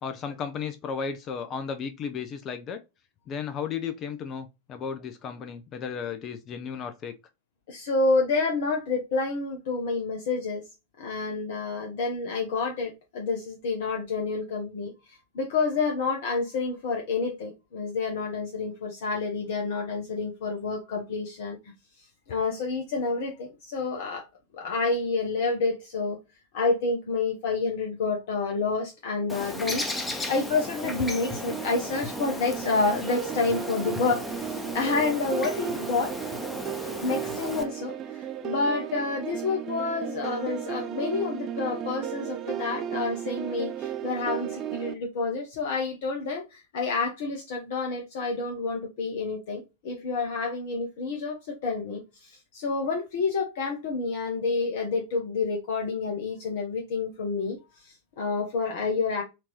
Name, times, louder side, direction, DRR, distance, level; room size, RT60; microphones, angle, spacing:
voice 1, 0.0-2.8 3.3-7.1, left 6 dB, 30° left, 0.5 m, -34 dB
voice 2, 7.7-10.6 11.0-21.6 22.3-24.3 24.5-26.2 26.5-36.1 37.0-59.2, left 4 dB, 55° left, 0.8 m, -29 dB
Bird, 29.3-37.6, left 1 dB, 10° left, 0.9 m, -35 dB
sound 1, 30.8-44.9, right 10 dB, 30° right, 0.5 m, -35 dB
4.3 x 2.6 x 3.0 m
figure-of-eight pair, 90°, 0 cm